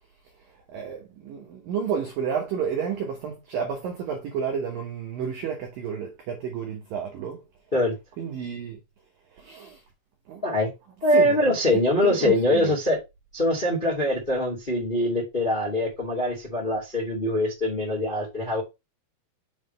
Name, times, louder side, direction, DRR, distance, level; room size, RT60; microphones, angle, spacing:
voice 1, 0.7-7.4 8.2-8.8 9.3-9.8 10.3-10.4 11.1-12.7, right 7 dB, 80° right, 2.0 m, -31 dB
voice 2, 11.0-13.0 13.3-18.6, left 1 dB, 35° left, 0.8 m, -23 dB
7.1 x 3.7 x 5.3 m
omnidirectional pair, 5.8 m